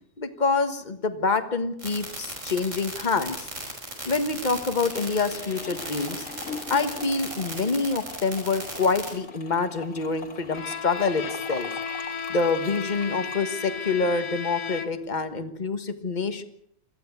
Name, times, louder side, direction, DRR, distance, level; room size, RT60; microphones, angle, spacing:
voice 1, 0.2-3.5 4.0-6.3 6.7-11.7 12.3-16.4, left 4 dB, 30° left, 8 dB, 1.6 m, -26 dB
sound 1, 1.8-9.1, right 1 dB, 55° right, 5.9 m, -36 dB
sound 2, 4.9-13.4, left 4 dB, 65° left, 2.5 m, -41 dB
Bowed string instrument, 10.5-15.2, left 5 dB, 90° left, 1.8 m, -34 dB
21.5 x 15.0 x 8.3 m, 0.72 s
omnidirectional pair, 1.5 m